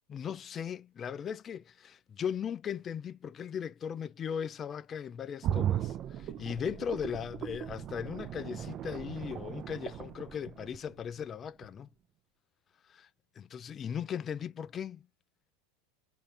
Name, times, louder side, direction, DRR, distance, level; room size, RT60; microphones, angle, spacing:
voice 1, 0.1-11.9 12.9-13.1 13.4-15.0, left 8 dB, 30° left, 0.3 m, -38 dB
sound 1, 5.4-11.2 11.6-11.7, right 11 dB, 40° right, 0.4 m, -37 dB
3.6 x 2.6 x 3.3 m
figure-of-eight pair, 85°, 0 cm